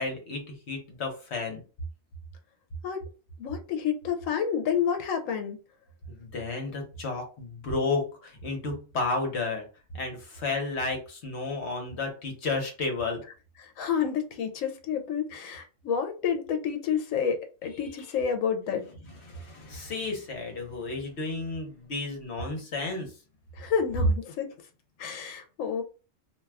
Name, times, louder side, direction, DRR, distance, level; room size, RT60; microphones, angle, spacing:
voice 1, 0.0-1.6 6.1-9.6 9.9-13.2 17.8-17.9 19.2-23.2, left 3 dB, 60° left, 1.1 m, -32 dB
voice 2, 3.4-5.6 13.6-18.9 23.5-24.5 25.0-25.8, left 7 dB, 80° left, 1.0 m, -29 dB
2.6 x 2.3 x 3.3 m
omnidirectional pair, 1.3 m